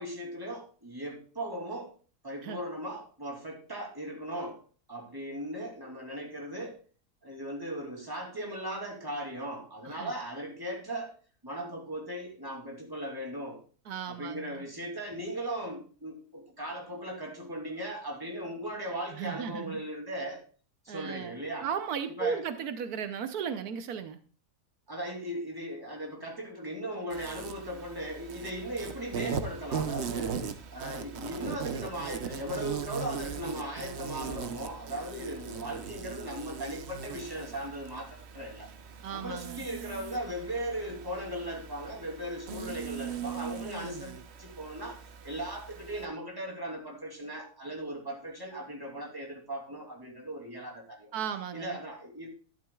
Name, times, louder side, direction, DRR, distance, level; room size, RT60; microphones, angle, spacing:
voice 1, 0.0-1.9 2.2-4.6 4.9-6.8 7.2-11.1 11.4-13.6 14.1-20.4 20.8-21.7 22.1-22.4 24.9-38.7 39.1-45.0 45.2-51.1 51.5-52.3, right 1 dB, 15° right, 0 dB, 2.9 m, -38 dB
voice 2, 13.9-14.7 19.1-19.8 20.9-24.2 39.0-39.7 51.1-51.8, right 7 dB, 80° right, 9 dB, 1.3 m, -36 dB
Insect, 27.1-46.0, right 6 dB, 50° right, 1.0 m, -39 dB
12.0 x 11.5 x 2.3 m, 0.39 s
omnidirectional pair, 1.6 m